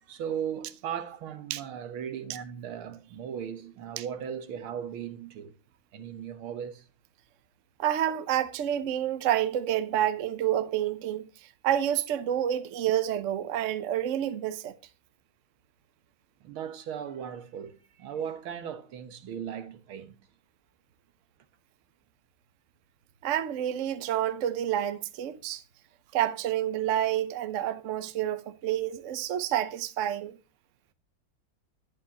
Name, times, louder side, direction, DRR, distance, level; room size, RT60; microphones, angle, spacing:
voice 1, 0.0-5.5 5.9-6.9 16.4-20.2, right 8 dB, 90° right, 2.0 m, -37 dB
voice 2, 7.8-11.3 11.6-14.7 23.2-25.6 26.1-30.3, right 11 dB, 55° right, 0.9 m, -28 dB
11.0 x 10.0 x 2.9 m
omnidirectional pair, 2.2 m